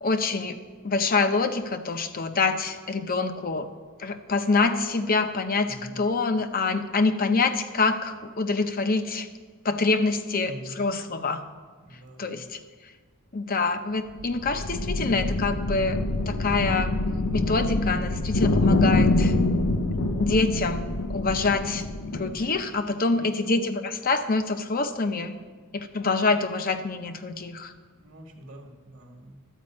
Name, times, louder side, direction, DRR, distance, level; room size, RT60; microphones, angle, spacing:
voice 1, 0.0-0.6 0.8-3.7 4.0-9.3 9.6-11.4 12.2-12.6 13.3-16.0 16.3-16.9 17.3-19.3 20.2-20.8 21.1-25.4 25.7-27.7, left 3 dB, 40° left, 9 dB, 0.7 m, -26 dB
voice 2, 5.7-6.1 10.4-10.8 11.8-12.5 23.1-23.7 28.0-29.6, right 1 dB, 50° right, 1 dB, 1.2 m, -44 dB
sound 1, 14.1-22.6, left 2 dB, 85° left, 0.7 m, -25 dB
12.0 x 5.2 x 8.6 m, 1.5 s
head